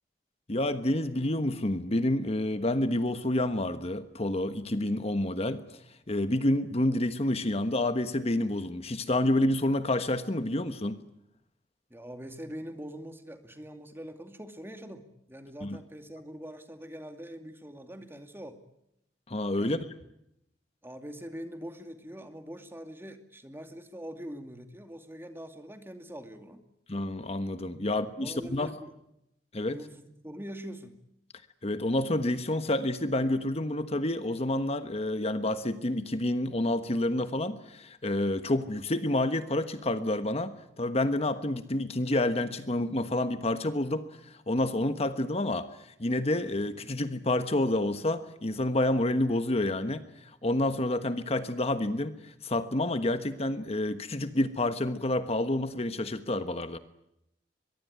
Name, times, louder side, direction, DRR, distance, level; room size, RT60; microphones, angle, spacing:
voice 1, 0.5-11.0 15.6-15.8 19.3-19.8 26.9-28.7 29.5-29.8 31.6-56.8, left 1 dB, 35° left, 10 dB, 1.3 m, -29 dB
voice 2, 11.9-18.6 19.6-19.9 20.8-26.6 27.8-28.9 29.7-31.0, equal, 15° right, 7 dB, 2.4 m, -43 dB
23.0 x 23.0 x 9.6 m, 0.81 s
head